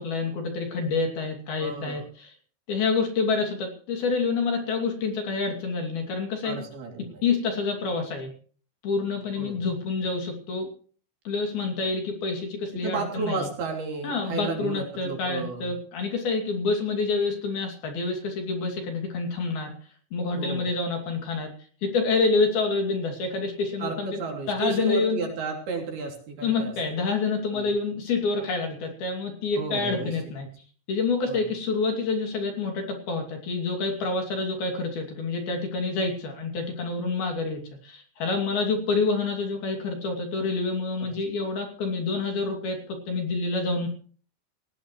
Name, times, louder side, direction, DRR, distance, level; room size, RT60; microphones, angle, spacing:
voice 1, 0.0-2.3 2.7-6.6 7.2-8.3 8.8-10.7 11.3-13.5 14.0-19.7 20.1-21.5 21.8-24.2 24.5-25.2 26.4-30.5 30.9-43.9, left 4 dB, 55° left, 3 dB, 4.2 m, -27 dB
voice 2, 1.6-2.0 6.4-7.2 9.3-9.6 12.7-15.7 20.4-20.7 23.8-26.7 27.5-27.7 29.6-30.2 31.3-31.4 41.0-41.1, right 4 dB, 55° right, 2 dB, 4.6 m, -33 dB
18.0 x 18.0 x 3.1 m, 0.43 s
omnidirectional pair, 5.7 m